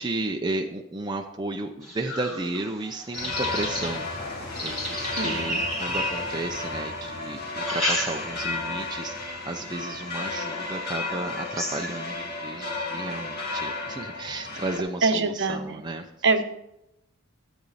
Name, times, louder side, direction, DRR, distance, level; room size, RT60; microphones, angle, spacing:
voice 1, 0.0-4.2 4.6-16.1, right 2 dB, 20° right, 3 dB, 0.6 m, -33 dB
sound 1, 1.8-6.8 7.4-8.6 9.0-9.4 10.0-10.1 10.6-10.7 11.0-12.1, equal, ahead, 2.3 m, -33 dB
sound 2, 3.1-14.8, left 3 dB, 45° left, 2.1 m, -33 dB
voice 2, 5.2-5.5 15.0-15.8 16.2-16.4, right 3 dB, 55° right, 8 dB, 0.9 m, -24 dB
13.5 x 8.3 x 4.2 m, 0.86 s
head